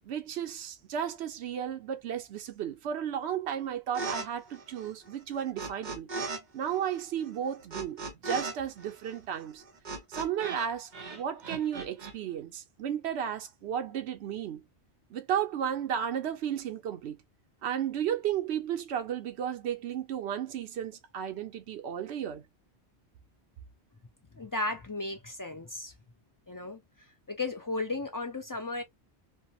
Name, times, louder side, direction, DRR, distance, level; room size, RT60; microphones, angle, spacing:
voice 1, 0.1-6.1 6.5-9.6 10.1-14.6 15.1-17.2 17.6-22.5, right 9 dB, 75° right, 0.9 m, -33 dB
sound 1, 3.9-4.3 4.5-6.4 6.7-10.7 10.9-12.1, right 3 dB, 45° right, 0.9 m, -38 dB
voice 2, 24.3-25.9 26.5-26.8 27.3-28.8, left 2 dB, 30° left, 0.3 m, -34 dB
3.2 x 2.0 x 2.7 m
omnidirectional pair, 1.1 m